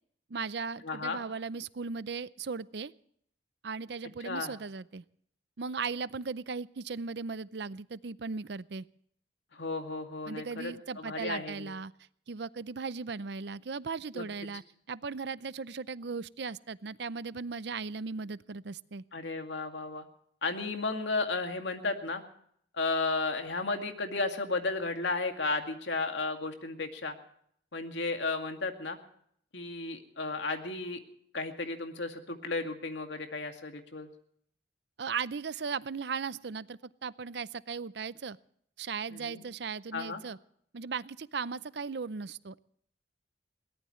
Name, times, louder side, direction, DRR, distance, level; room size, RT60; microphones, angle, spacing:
voice 1, 0.3-2.9 3.6-5.0 5.6-8.9 10.3-11.9 12.3-14.6 14.9-19.0 35.0-38.4 38.8-40.4 40.7-42.6, right 5 dB, 65° right, 17 dB, 0.5 m, -37 dB
voice 2, 0.8-1.2 4.2-4.5 9.5-11.7 14.1-14.3 19.1-20.0 20.4-22.2 22.7-27.1 27.7-29.0 29.5-31.0 31.3-34.1 39.1-39.4 39.9-40.2, left 3 dB, 75° left, 5 dB, 2.3 m, -34 dB
21.5 x 18.0 x 3.2 m, 0.65 s
head